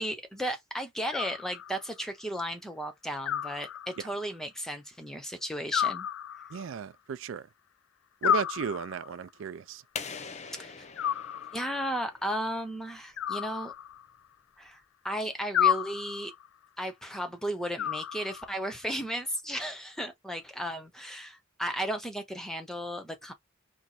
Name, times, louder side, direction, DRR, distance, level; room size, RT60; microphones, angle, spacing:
voice 1, 0.0-6.1 10.6-10.8 11.5-13.7 14.6-16.3 16.8-23.3, equal, 5° left, 0.9 m, -35 dB
Animal, 1.1-2.0 3.2-4.3 5.7-6.8 8.2-9.2 11.0-11.9 13.2-14.3 15.5-16.5 17.8-18.7, left 9 dB, 85° left, 0.3 m, -31 dB
voice 2, 6.5-7.5 8.2-9.8, right 7 dB, 75° right, 0.3 m, -35 dB
sound 1, 10.0-12.6, left 5 dB, 35° left, 0.7 m, -42 dB
4.6 x 2.1 x 4.1 m
head